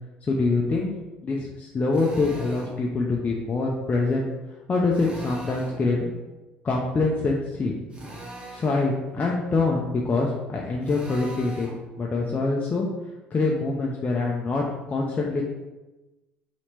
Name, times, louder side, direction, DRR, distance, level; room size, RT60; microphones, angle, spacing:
voice 1, 0.3-0.9 1.2-4.3 4.7-6.0 6.6-7.7 8.5-11.7 12.0-12.9 13.3-15.4, left 3 dB, 30° left, -2 dB, 0.5 m, -25 dB
Drill, 1.9-2.8 4.9-5.8 7.9-8.8 10.8-11.8, right 1 dB, 20° right, 1.1 m, -40 dB
2.9 x 2.9 x 3.3 m, 1.1 s
hypercardioid pair, 60°, 5 cm